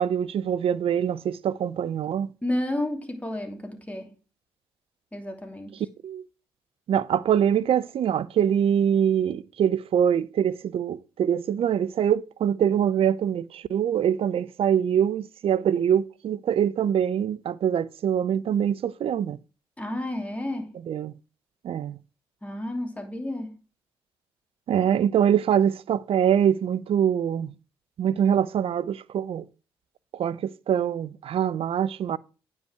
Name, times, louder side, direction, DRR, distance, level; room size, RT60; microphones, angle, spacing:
voice 1, 0.0-2.3 6.0-6.2 6.9-19.4 20.9-21.1 21.6-22.0 24.7-27.5 28.0-29.4 30.1-32.2, right 9 dB, 55° right, 0.5 m, -24 dB
voice 2, 2.4-4.1 5.1-5.7 19.8-20.7 22.4-23.6, left 1 dB, 10° left, 2.9 m, -31 dB
9.3 x 5.4 x 4.7 m
hypercardioid pair, 45°, 11 cm